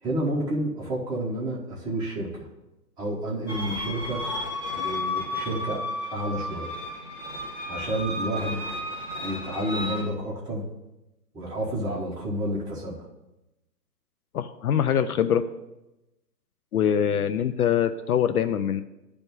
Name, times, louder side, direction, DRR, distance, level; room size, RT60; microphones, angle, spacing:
voice 1, 0.0-2.3 3.0-4.2 4.7-5.8 6.1-6.7 7.7-8.6 9.2-10.6 11.3-13.1, right 1 dB, 10° right, -5 dB, 1.1 m, -30 dB
sound 1, 3.5-10.0, left 1 dB, 45° left, 2.5 m, -33 dB
voice 2, 14.3-15.4 16.7-18.8, left 9 dB, 65° left, 11 dB, 0.6 m, -23 dB
10.5 x 3.5 x 6.8 m, 0.97 s
hypercardioid pair, 140°, 50 cm